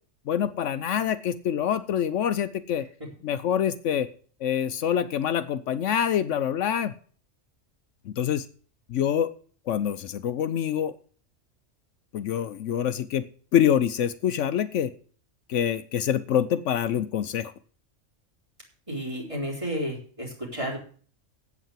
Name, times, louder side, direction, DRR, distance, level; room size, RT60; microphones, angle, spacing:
voice 1, 0.3-2.9 3.2-4.1 4.4-6.9 8.1-8.4 8.9-9.3 9.7-11.0 12.1-13.3 13.5-14.9 15.5-17.5, left 9 dB, 75° left, 12 dB, 1.0 m, -25 dB
voice 2, 18.9-20.8, equal, 25° right, -1 dB, 3.7 m, -32 dB
8.4 x 8.1 x 7.4 m, 0.43 s
omnidirectional pair, 1.3 m